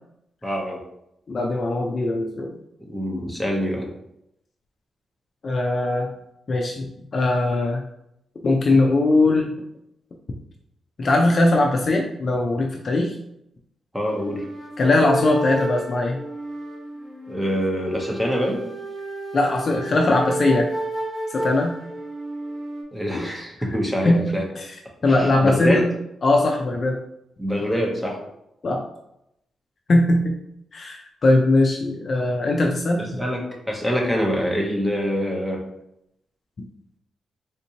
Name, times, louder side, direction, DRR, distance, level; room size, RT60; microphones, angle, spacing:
voice 1, 0.4-0.8 2.8-3.9 13.9-14.4 17.3-18.7 22.9-24.4 25.0-25.9 27.4-28.2 33.0-35.6, equal, 5° right, -1 dB, 0.7 m, -25 dB
voice 2, 1.3-2.6 3.1-3.3 5.4-6.1 6.5-7.8 8.4-9.5 11.0-13.1 14.8-16.2 19.3-20.7 21.3-21.8 23.1-23.3 24.0-24.3 24.6-24.7 25.0-25.9 26.2-27.0 28.6-28.8 29.9-30.4 30.7-33.1, left 2 dB, 35° left, 1 dB, 0.3 m, -20 dB
sound 1, 14.0-22.8, right 1 dB, 25° right, 0.9 m, -31 dB
3.5 x 2.8 x 2.7 m, 0.79 s
wide cardioid pair, 165°, 0 cm